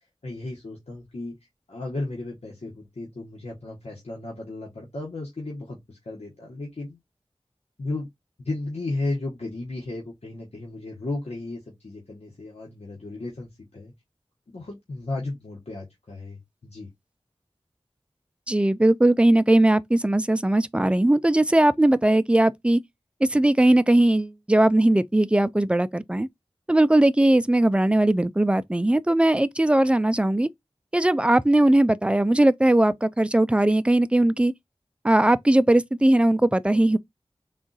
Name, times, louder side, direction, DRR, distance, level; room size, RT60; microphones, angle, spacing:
voice 1, 0.2-1.3 1.7-7.0 7.8-8.1 8.4-13.9 14.5-16.9, left 2 dB, 85° left, 1.1 m, -34 dB
voice 2, 18.5-22.8 23.3-26.3 26.7-30.5 30.9-34.5 35.0-37.0, right 1 dB, 10° right, 0.3 m, -19 dB
3.6 x 2.4 x 3.9 m
wide cardioid pair, 45°, 10 cm